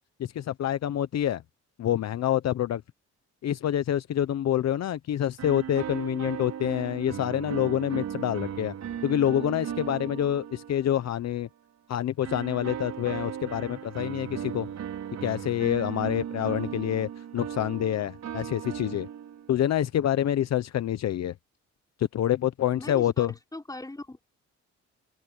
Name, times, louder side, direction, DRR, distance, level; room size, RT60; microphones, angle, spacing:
voice 1, 0.2-1.4 1.8-2.8 3.4-8.7 9.0-11.5 11.9-14.7 15.2-19.1 19.5-21.3 22.0-23.3, left 11 dB, 60° left, 0.9 m, -27 dB
sound 1, 5.4-11.2 12.2-19.6, right 9 dB, 65° right, 5.1 m, -36 dB
voice 2, 22.8-24.2, left 2 dB, 10° left, 5.4 m, -40 dB
open air
cardioid pair, 90°, 30 cm